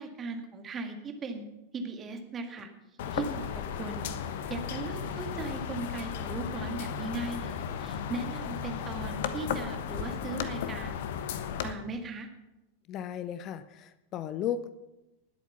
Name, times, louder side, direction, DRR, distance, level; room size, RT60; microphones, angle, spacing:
voice 1, 0.0-1.4 1.7-2.7 3.1-11.0 11.6-12.3, right 3 dB, 25° right, 5 dB, 2.1 m, -38 dB
sound 1, 3.0-11.7, left 8 dB, 55° left, 1.1 m, -35 dB
voice 2, 12.9-14.7, left 9 dB, 35° left, 14 dB, 0.6 m, -35 dB
19.5 x 8.2 x 5.9 m, 0.98 s
figure-of-eight pair, 90°, 0 cm